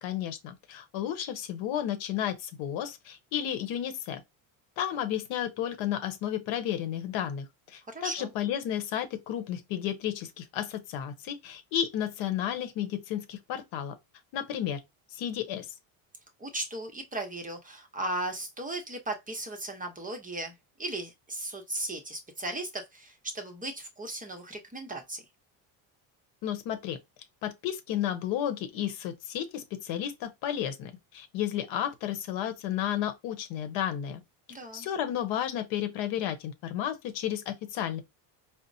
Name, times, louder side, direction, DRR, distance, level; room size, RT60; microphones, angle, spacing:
voice 1, 0.0-4.2 4.8-14.0 14.3-14.8 15.1-15.7 26.4-27.0 27.4-34.2 34.7-38.0, left 10 dB, 70° left, 0.9 m, -32 dB
voice 2, 7.9-8.3 16.4-20.5 20.8-25.2 34.5-34.9, right 1 dB, 15° right, 0.7 m, -36 dB
4.1 x 2.0 x 2.6 m
cardioid pair, 110°, 48 cm